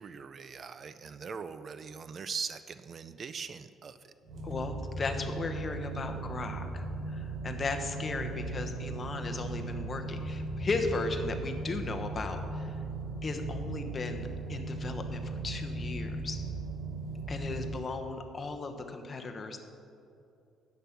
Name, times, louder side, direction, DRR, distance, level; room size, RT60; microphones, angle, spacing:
voice 1, 0.0-4.1, right 5 dB, 40° right, 12 dB, 0.3 m, -41 dB
sound 1, 4.2-17.7, right 2 dB, 60° right, 1.4 m, -37 dB
voice 2, 4.4-12.7 13.2-16.4 17.3-19.6, left 3 dB, 30° left, 5 dB, 1.0 m, -36 dB
10.0 x 7.7 x 5.8 m, 2.6 s
cardioid pair, 125°, 0 cm